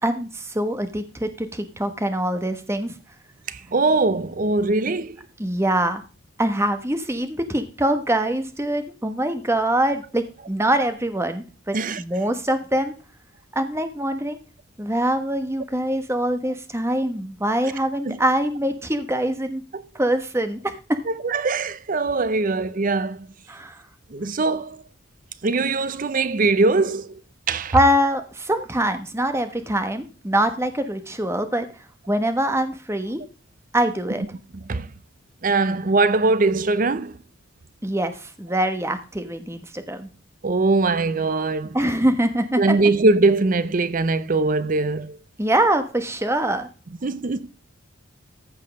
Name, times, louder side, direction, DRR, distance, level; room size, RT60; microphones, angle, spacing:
voice 1, 0.0-3.0 5.4-6.0 6.4-12.9 13.5-14.4 14.8-19.6 19.9-21.0 23.5-23.8 27.7-31.7 32.1-33.2 33.7-34.2 37.8-40.1 41.7-42.8 45.4-46.7, right 1 dB, 15° right, 1.2 m, -24 dB
voice 2, 3.5-5.2 11.7-12.0 18.0-18.2 19.7-19.8 21.1-23.3 24.1-24.8 25.4-27.2 27.5-27.8 34.5-34.9 35.4-37.2 40.4-41.8 42.6-45.2 47.0-47.5, right 3 dB, 40° right, 0.6 m, -21 dB
14.5 x 5.5 x 5.2 m
head